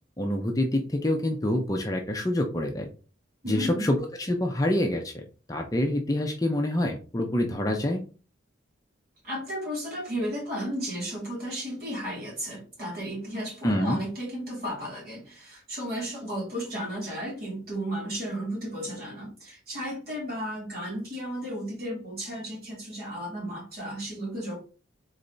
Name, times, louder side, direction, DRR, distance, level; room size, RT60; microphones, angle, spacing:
voice 1, 0.2-2.9 3.5-5.2 5.5-8.0 13.6-14.0, left 1 dB, 20° left, 0.5 m, -26 dB
voice 2, 3.4-3.9 9.2-24.7, equal, 50° right, 2.4 m, -34 dB
4.0 x 3.3 x 3.9 m
head